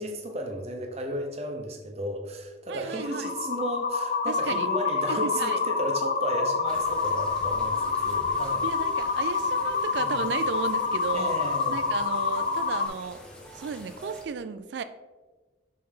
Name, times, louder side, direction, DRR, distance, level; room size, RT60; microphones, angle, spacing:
voice 1, 0.0-8.7 10.0-10.3 11.1-11.9, right 1 dB, 35° right, 3 dB, 0.8 m, -34 dB
voice 2, 2.7-3.3 4.3-4.7 5.1-5.6 8.6-11.3 11.7-13.2 13.5-14.8, right 5 dB, 65° right, 11 dB, 0.3 m, -34 dB
sound 1, 2.9-12.9, left 5 dB, 40° left, 0.4 m, -27 dB
sound 2, 6.6-14.2, equal, 5° left, 0.8 m, -45 dB
6.5 x 4.1 x 3.8 m, 1.3 s
head